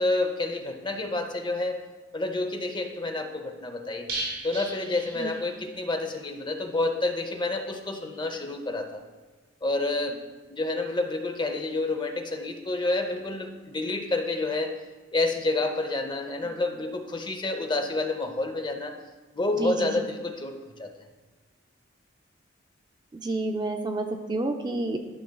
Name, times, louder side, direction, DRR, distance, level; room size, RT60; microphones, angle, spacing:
voice 1, 0.0-1.8 2.1-4.1 4.4-9.0 9.6-10.2 10.5-14.7 15.1-19.0 19.3-20.9, left 2 dB, 25° left, 5 dB, 0.7 m, -29 dB
sound 1, 4.1-5.9 6.1-6.2 6.6-6.7, right 2 dB, 85° right, 1.8 m, -36 dB
voice 2, 19.5-19.9 23.1-25.0, right 2 dB, 25° right, 4 dB, 0.4 m, -29 dB
12.0 x 5.9 x 2.3 m, 1.3 s
head